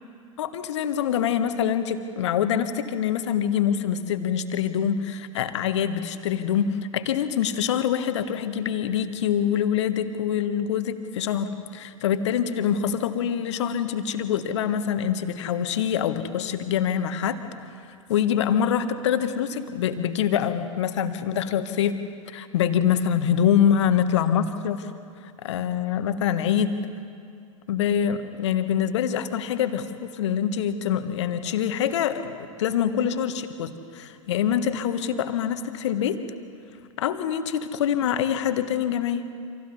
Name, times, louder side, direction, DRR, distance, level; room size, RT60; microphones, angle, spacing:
voice 1, 0.4-17.4 18.1-24.9 25.4-26.8 27.7-36.2 37.0-39.3, left 9 dB, 55° left, 9 dB, 1.5 m, -25 dB
29.0 x 26.5 x 4.2 m, 2.3 s
figure-of-eight pair, 90°, 17 cm